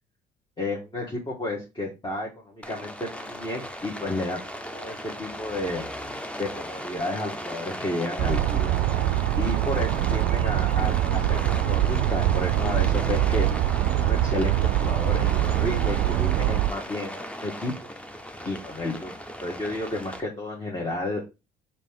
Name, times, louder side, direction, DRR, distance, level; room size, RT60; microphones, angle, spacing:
voice 1, 0.6-5.8 6.4-8.7 9.4-17.7 18.4-19.1 19.4-21.2, left 2 dB, 25° left, -3 dB, 1.4 m, -32 dB
Rain, 2.6-20.2, equal, 5° left, 0.7 m, -37 dB
sound 1, 8.2-16.7, right 13 dB, 70° right, 0.4 m, -23 dB
4.1 x 2.8 x 3.6 m, 0.26 s
hypercardioid pair, 60°, 19 cm